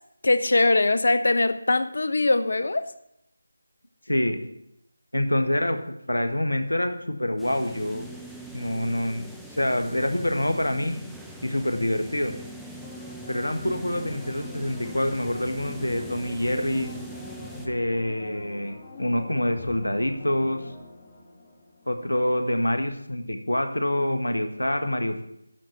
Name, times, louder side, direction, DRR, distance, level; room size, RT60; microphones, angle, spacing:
voice 1, 0.2-2.9, left 2 dB, 50° left, 11 dB, 0.8 m, -21 dB
voice 2, 4.1-4.4 5.1-5.8 6.1-8.1 8.5-9.2 9.5-11.0 11.4-12.3 13.3-16.9 17.6-20.7 21.9-25.2, left 1 dB, 70° left, 8 dB, 1.4 m, -26 dB
sound 1, 7.4-17.7, right 1 dB, ahead, 0.5 m, -41 dB
sound 2, 12.8-22.2 22.6-22.7, left 3 dB, 15° left, 2.0 m, -44 dB
11.0 x 4.6 x 7.9 m, 0.77 s
figure-of-eight pair, 160°, 0 cm